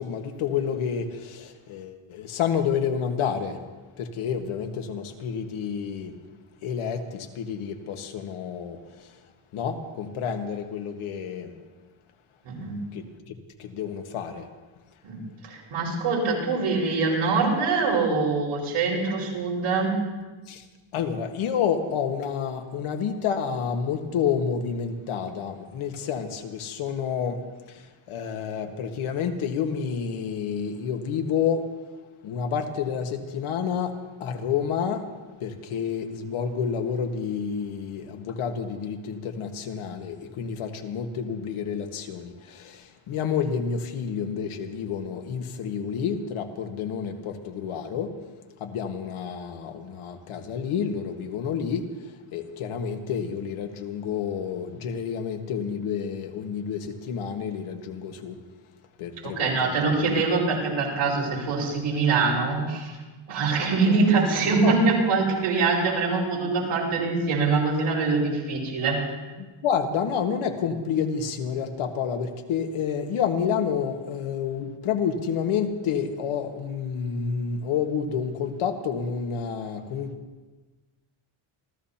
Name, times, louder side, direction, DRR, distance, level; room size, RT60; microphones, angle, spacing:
voice 1, 0.0-3.6 4.0-6.1 6.6-9.1 9.5-11.5 12.9-13.3 13.6-14.5 20.5-20.6 20.9-27.4 27.7-31.6 32.2-33.9 34.2-35.1 35.4-48.1 48.6-51.8 52.3-58.4 59.0-59.7 64.6-64.8 69.6-80.1, left 7 dB, 80° left, 5 dB, 1.6 m, -29 dB
voice 2, 12.4-12.8 15.0-15.2 15.4-19.9 59.2-63.0 63.3-69.0, right 4 dB, 75° right, -3 dB, 5.3 m, -24 dB
27.5 x 14.5 x 2.9 m, 1.3 s
cardioid pair, 155°, 49 cm